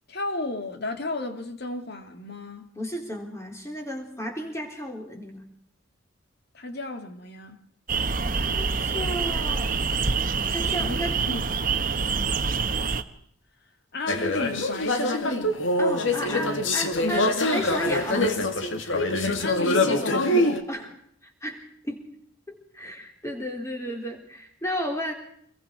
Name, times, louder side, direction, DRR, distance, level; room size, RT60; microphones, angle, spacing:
voice 1, 0.1-2.7 6.5-7.7 10.7-11.0 11.3-12.0 13.9-15.7 19.4-20.9, left 2 dB, 55° left, 2.3 m, -34 dB
voice 2, 2.8-5.5 8.3-9.7 10.5-11.2 15.8-18.3 20.7-20.9 21.4-22.0 22.5-25.1, equal, 15° left, 4.0 m, -33 dB
sound 1, 7.9-13.0, right 4 dB, 45° right, 1.2 m, -26 dB
sound 2, 14.1-20.6, left 1 dB, 70° left, 2.4 m, -24 dB
27.0 x 22.0 x 4.8 m
head